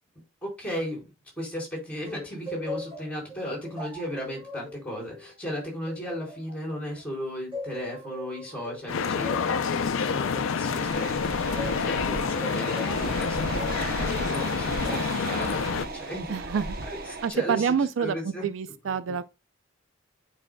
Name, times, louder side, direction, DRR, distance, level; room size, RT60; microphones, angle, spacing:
voice 1, 0.4-1.1 1.4-16.6 16.8-17.7 18.0-18.4 18.8-19.2, equal, 5° left, 4.2 m, -36 dB
sound 1, 2.1-7.1 7.5-11.9 12.4-13.8 14.8-15.3, left 1 dB, 25° right, 3.0 m, -39 dB
sound 2, 8.9-15.9, left 5 dB, 80° left, 0.5 m, -28 dB
sound 3, 10.7-17.3, right 3 dB, 50° right, 0.8 m, -35 dB
voice 2, 16.3-16.8 17.2-19.2, right 6 dB, 70° right, 0.4 m, -27 dB
9.8 x 5.0 x 2.2 m
head